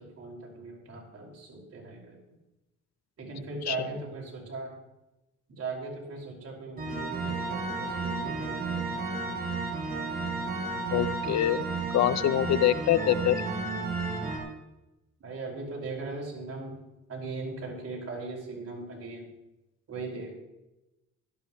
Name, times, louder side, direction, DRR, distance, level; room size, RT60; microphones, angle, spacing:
voice 1, 0.0-2.2 3.2-4.7 5.6-8.9 15.2-16.8 17.1-19.3 19.9-20.3, right 3 dB, 55° right, -2 dB, 5.2 m, -39 dB
sound 1, 6.8-14.4, right 3 dB, 30° right, 4.9 m, -32 dB
voice 2, 10.9-11.6 11.9-13.4, left 12 dB, 60° left, 16 dB, 0.6 m, -25 dB
16.5 x 13.0 x 3.1 m, 0.97 s
cardioid pair, 90°, 30 cm